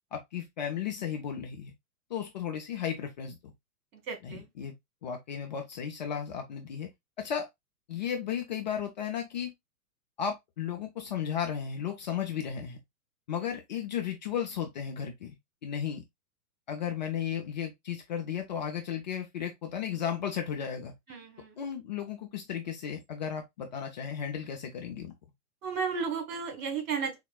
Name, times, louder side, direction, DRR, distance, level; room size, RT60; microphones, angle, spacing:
voice 1, 0.1-1.7 2.1-3.4 4.2-4.7 5.0-6.9 7.2-7.5 7.9-9.5 10.2-12.8 13.3-15.4 15.6-16.0 16.7-20.9 21.6-25.1, left 8 dB, 30° left, 0.4 m, -34 dB
voice 2, 4.1-4.5 21.1-21.6 25.6-27.2, right 5 dB, 60° right, 1.6 m, -33 dB
4.1 x 2.1 x 2.3 m
hypercardioid pair, 115°, 46 cm